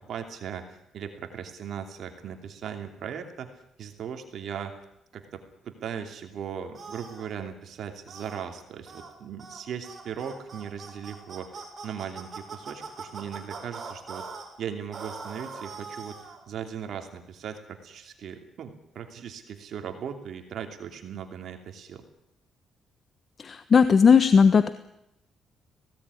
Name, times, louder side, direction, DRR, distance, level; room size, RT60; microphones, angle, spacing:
voice 1, 0.1-3.5 3.8-4.8 5.1-14.3 14.6-16.2 16.5-22.0, right 8 dB, 65° right, 5 dB, 2.9 m, -38 dB
sound 1, 6.7-7.3 8.1-8.4 8.9-9.1 9.4-9.6 9.8-14.5 14.9-16.4, right 4 dB, 40° right, 7.3 m, -41 dB
voice 2, 23.4-24.7, left 6 dB, 45° left, 11 dB, 1.2 m, -17 dB
20.5 x 17.5 x 9.9 m, 0.82 s
cardioid pair, 90°, 0 cm